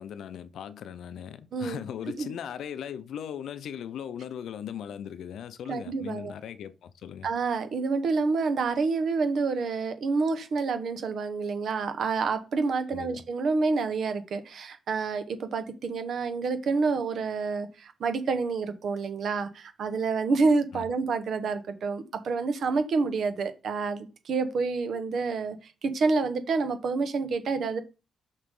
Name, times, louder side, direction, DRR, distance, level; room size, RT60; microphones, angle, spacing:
voice 1, 0.0-7.3 12.9-13.2 20.7-20.9, left 9 dB, 70° left, 0.6 m, -38 dB
voice 2, 1.5-1.8 2.2-2.3 5.7-6.3 7.2-27.8, right 4 dB, 55° right, 1.1 m, -28 dB
6.4 x 5.8 x 3.8 m
wide cardioid pair, 170°, 0 cm